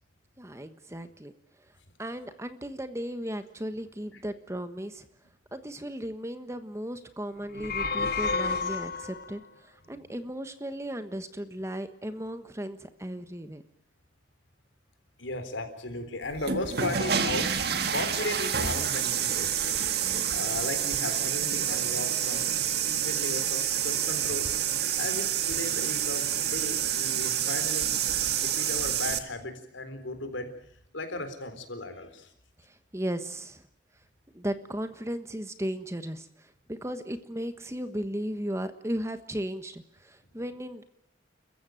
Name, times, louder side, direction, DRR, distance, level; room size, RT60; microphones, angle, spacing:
voice 1, 0.4-1.3 2.0-5.1 5.5-13.6 32.6-33.6 34.3-40.8, equal, 15° right, 10 dB, 1.3 m, -36 dB
sound 1, 7.4-9.3, left 4 dB, 55° left, 1.6 m, -30 dB
voice 2, 15.2-19.5 20.3-24.5 24.9-28.0 28.4-32.3, left 2 dB, 80° left, 8 dB, 3.9 m, -36 dB
sound 2, 16.3-29.2, right 9 dB, 55° right, 1.8 m, -28 dB
29.5 x 15.0 x 9.2 m, 0.70 s
head